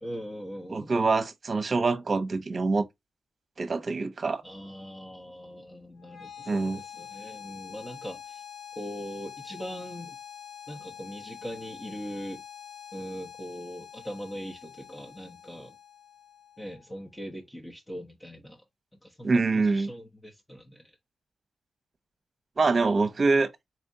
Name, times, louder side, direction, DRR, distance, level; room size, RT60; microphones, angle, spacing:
voice 1, 0.0-1.0 4.4-8.4 8.8-10.1 10.7-12.4 12.9-15.7 16.6-18.6 19.0-20.8, equal, 15° left, 1.1 m, -41 dB
voice 2, 0.7-2.9 3.6-4.4 6.5-6.8 19.2-19.9 22.6-23.5, right 3 dB, 45° right, 0.9 m, -25 dB
sound 1, 6.0-17.0, left 9 dB, 55° left, 1.3 m, -46 dB
4.3 x 3.4 x 2.7 m
cardioid pair, 65°, 0 cm